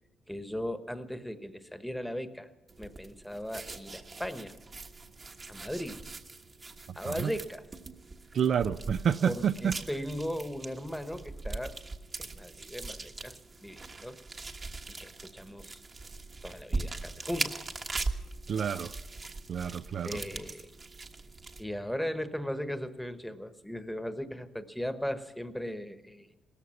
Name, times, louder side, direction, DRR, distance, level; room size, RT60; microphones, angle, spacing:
voice 1, 0.3-2.5 2.8-4.5 5.5-6.1 6.9-7.7 9.2-11.8 12.2-14.2 14.9-15.8 16.4-17.6 20.0-20.7 21.6-26.3, equal, ahead, 1.2 m, -37 dB
sound 1, 2.7-21.6, right 3 dB, 35° right, 1.3 m, -41 dB
voice 2, 8.3-9.7 18.5-18.9 19.5-20.2, right 8 dB, 60° right, 0.5 m, -29 dB
17.5 x 14.0 x 5.8 m
cardioid pair, 90°, 0 cm